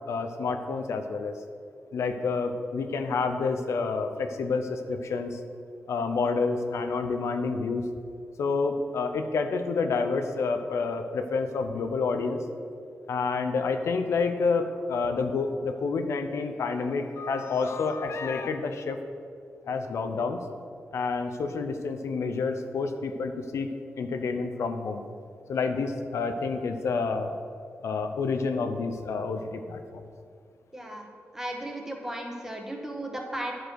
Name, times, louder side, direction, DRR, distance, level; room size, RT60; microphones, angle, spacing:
voice 1, 0.1-1.3 1.9-5.4 5.9-7.8 8.4-12.4 13.1-19.0 19.7-20.4 20.9-23.7 24.0-25.0 25.5-27.3 27.8-30.0, left 4 dB, 85° left, 7 dB, 0.7 m, -29 dB
voice 2, 30.7-31.1 31.3-33.5, right 1 dB, 10° right, 1 dB, 1.3 m, -35 dB
10.5 x 4.7 x 6.3 m, 2.3 s
wide cardioid pair, 110°, 5 cm